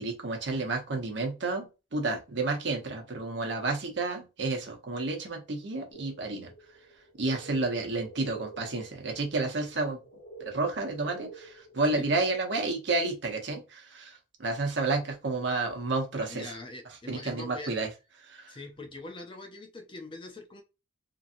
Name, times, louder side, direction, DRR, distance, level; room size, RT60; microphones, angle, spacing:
voice 1, 0.0-6.5 7.2-10.0 10.4-16.5 17.1-17.9 18.2-18.5, right 3 dB, 60° right, 0.8 m, -31 dB
sound 1, 5.9-12.4, right 3 dB, 70° left, 0.9 m, -49 dB
voice 2, 16.3-17.8 18.5-20.6, left 2 dB, 25° left, 0.5 m, -43 dB
3.0 x 2.7 x 2.5 m
head